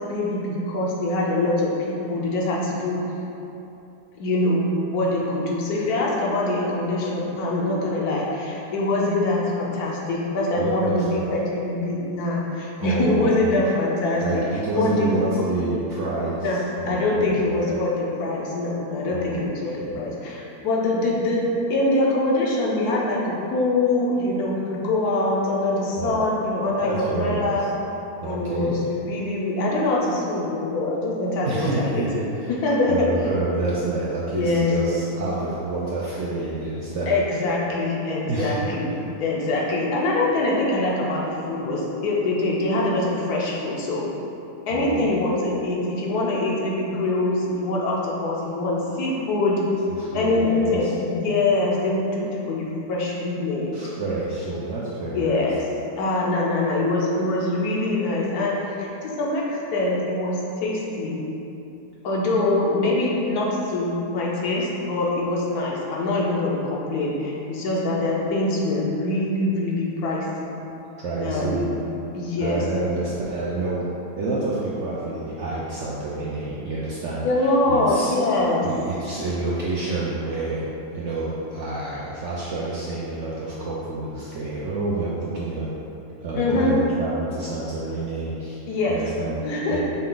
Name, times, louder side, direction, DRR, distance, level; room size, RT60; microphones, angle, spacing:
voice 1, 0.1-3.0 4.2-4.6 4.9-14.4 14.8-15.5 16.4-27.7 28.2-32.2 32.5-33.1 34.3-34.7 37.1-44.1 44.7-49.6 50.1-53.7 55.1-55.6 56.0-61.2 62.0-70.5 71.2-71.6 72.1-72.6 77.2-78.7 86.3-86.8 88.7-89.0 89.4-89.8, left 2 dB, 70° left, -3 dB, 1.2 m, -24 dB
voice 2, 10.6-11.2 12.8-13.5 14.2-17.7 19.1-19.4 19.8-20.0 26.0-26.2 26.8-27.6 28.2-28.8 31.5-32.5 32.9-37.1 38.3-38.7 44.7-45.2 50.0-50.9 53.7-55.5 71.0-72.0 72.4-73.8 74.2-77.3 77.7-78.1 78.6-80.7 80.9-85.7 86.2-88.6 88.9-89.4 89.7-89.8, right 2 dB, 70° right, -7 dB, 0.7 m, -28 dB
5.4 x 2.4 x 3.8 m, 2.9 s
omnidirectional pair, 1.7 m